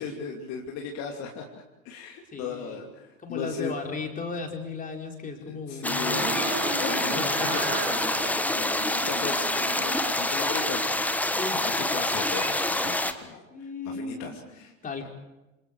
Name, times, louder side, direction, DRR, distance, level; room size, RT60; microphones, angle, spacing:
voice 1, 0.0-3.7 5.3-11.3 11.5-14.7, left 5 dB, 45° left, 1 dB, 2.9 m, -37 dB
voice 2, 2.3-2.8 3.2-6.3 6.9-7.7 11.4-11.6 13.5-14.4 14.8-15.1, left 4 dB, 20° left, 2 dB, 4.6 m, -36 dB
sound 1, 5.8-13.1, left 1 dB, 5° left, 1.4 m, -27 dB
sound 2, 6.0-10.4 10.7-11.5, right 5 dB, 30° right, 3.8 m, -36 dB
28.0 x 28.0 x 4.8 m, 0.99 s
figure-of-eight pair, 80°, 39 cm